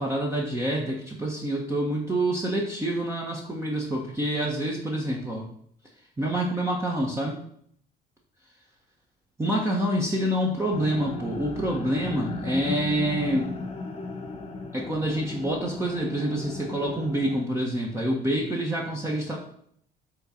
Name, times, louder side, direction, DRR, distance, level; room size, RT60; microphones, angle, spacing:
voice 1, 0.0-5.5 6.2-7.4 9.4-13.6 14.7-19.4, right 1 dB, 15° right, -2 dB, 1.3 m, -27 dB
sound 1, 10.7-17.4, left 3 dB, 35° left, 1.1 m, -36 dB
6.6 x 3.8 x 5.8 m, 0.65 s
cardioid pair, 110°, 17 cm